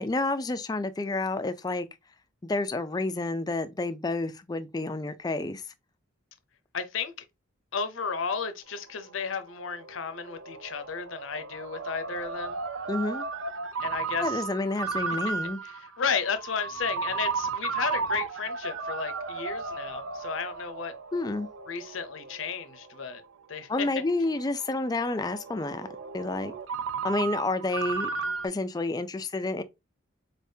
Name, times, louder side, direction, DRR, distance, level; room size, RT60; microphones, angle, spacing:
voice 1, 0.0-1.9 2.4-5.6 12.9-13.3 14.2-15.6 21.1-21.5 23.7-25.9 26.1-26.5 27.0-28.1 28.4-29.6, left 2 dB, 20° left, 0.3 m, -29 dB
voice 2, 6.7-7.1 7.7-12.6 13.8-14.4 16.0-20.9 21.7-23.2 23.5-23.9, left 6 dB, 80° left, 0.7 m, -33 dB
Ringtone, 8.7-28.5, right 5 dB, 80° right, 0.6 m, -35 dB
4.0 x 3.5 x 2.7 m
head